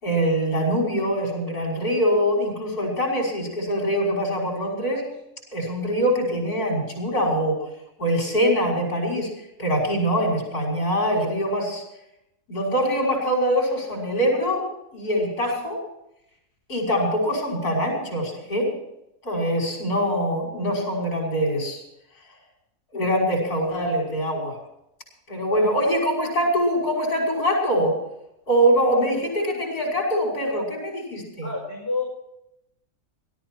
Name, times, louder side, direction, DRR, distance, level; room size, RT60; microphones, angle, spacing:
voice 1, 0.0-5.1 5.5-7.6 8.0-9.3 9.6-11.8 12.5-14.6 14.9-15.8 16.7-18.7 19.2-21.8 22.9-24.6 25.3-28.0 28.5-31.5, equal, 85° left, -1 dB, 6.3 m, -23 dB
voice 2, 31.4-32.0, left 3 dB, 40° left, -5 dB, 5.3 m, -29 dB
19.5 x 12.5 x 4.6 m, 0.84 s
omnidirectional pair, 1.6 m